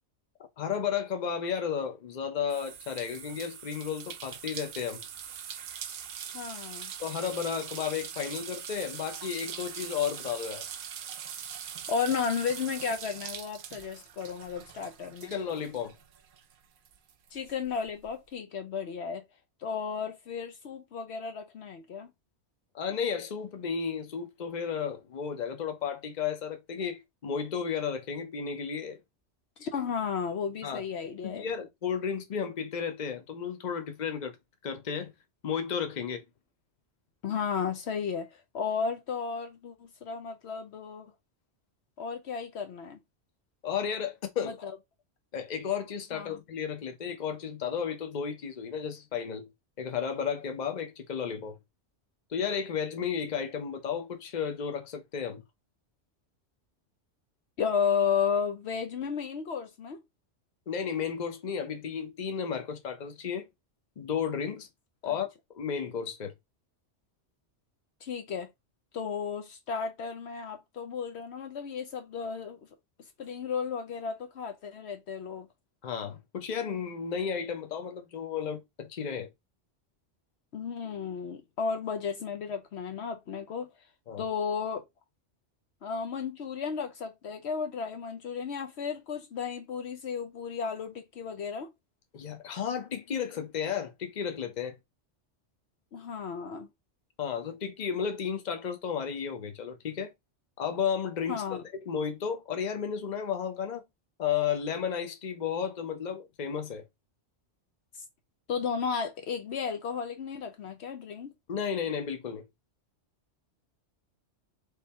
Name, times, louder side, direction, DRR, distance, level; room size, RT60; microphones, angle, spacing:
voice 1, 0.6-5.0 7.0-10.6 15.2-15.9 22.7-29.0 30.6-30.8 31.2-34.4 34.6-35.1 35.4-36.2 43.6-44.6 45.3-49.5 49.8-51.6 52.3-55.4 60.7-63.4 64.0-64.7 65.0-65.3 65.5-66.3 75.8-79.3 84.1-84.2 92.1-94.8 97.2-100.1 100.6-103.8 104.2-106.8 111.5-112.4, left 7 dB, 40° left, 0.8 m, -33 dB
sound 1, 2.5-16.5 16.9-18.1, right 8 dB, 55° right, 0.6 m, -42 dB
voice 2, 6.3-6.9 11.9-15.3 17.3-19.2 19.6-22.1 29.6-31.5 37.2-41.1 42.0-43.0 44.4-44.7 46.1-46.4 57.6-60.0 65.0-65.2 68.0-68.5 68.9-72.6 73.2-75.5 80.5-83.7 84.2-84.8 85.8-91.7 95.9-96.7 101.3-101.6 108.5-111.3, left 6 dB, 70° left, 0.9 m, -33 dB
3.5 x 2.7 x 4.2 m
omnidirectional pair, 1.2 m